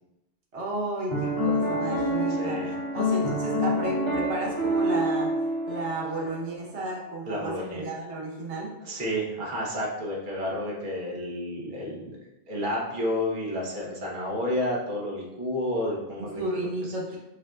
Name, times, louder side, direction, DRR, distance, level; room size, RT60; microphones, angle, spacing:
voice 1, 0.5-2.6 2.9-5.3 5.6-8.7 16.2-17.2, right 2 dB, 90° right, -4 dB, 1.3 m, -33 dB
Piano, 1.1-6.4, equal, 70° right, 1.8 m, -27 dB
voice 2, 2.3-2.7 7.3-7.8 8.8-16.4, left 1 dB, 50° right, -4 dB, 1.1 m, -31 dB
7.2 x 2.5 x 2.3 m, 0.95 s
omnidirectional pair, 1.1 m